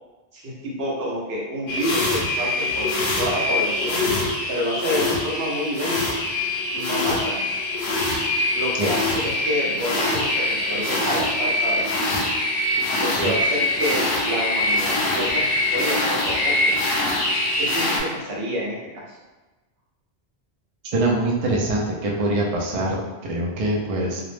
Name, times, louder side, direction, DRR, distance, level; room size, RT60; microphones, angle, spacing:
voice 1, 0.3-2.9 3.2-4.0 4.5-6.2 6.7-7.4 8.5-11.9 13.0-16.7 17.6-19.2, equal, 75° right, -3 dB, 1.0 m, -28 dB
sound 1, 1.7-18.0, left 2 dB, 75° left, 0.8 m, -23 dB
voice 2, 20.9-24.2, right 2 dB, 50° right, -2 dB, 0.4 m, -24 dB
2.4 x 2.0 x 3.1 m, 1.2 s
omnidirectional pair, 1.1 m